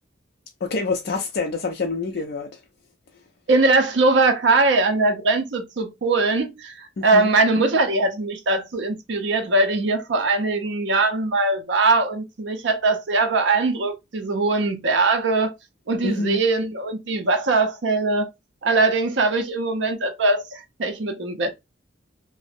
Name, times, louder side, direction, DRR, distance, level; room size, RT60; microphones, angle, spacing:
voice 1, 0.6-2.6 7.0-7.3 16.0-16.4, left 3 dB, 60° left, 0.4 m, -26 dB
voice 2, 3.5-15.5 15.9-18.3 18.6-21.5, right 3 dB, 70° right, 0.5 m, -21 dB
2.5 x 2.0 x 2.5 m
head